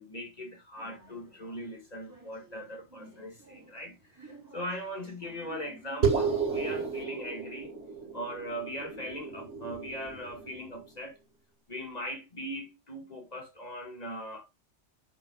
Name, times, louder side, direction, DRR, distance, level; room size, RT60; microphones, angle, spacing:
voice 1, 0.0-7.7 8.1-11.2 11.7-14.5, equal, 30° left, 2.5 m, -40 dB
sound 1, 0.8-6.7, right 3 dB, 15° right, 4.8 m, -53 dB
sound 2, 6.0-10.8, right 5 dB, 65° right, 2.4 m, -32 dB
10.5 x 7.3 x 2.5 m
omnidirectional pair, 1.3 m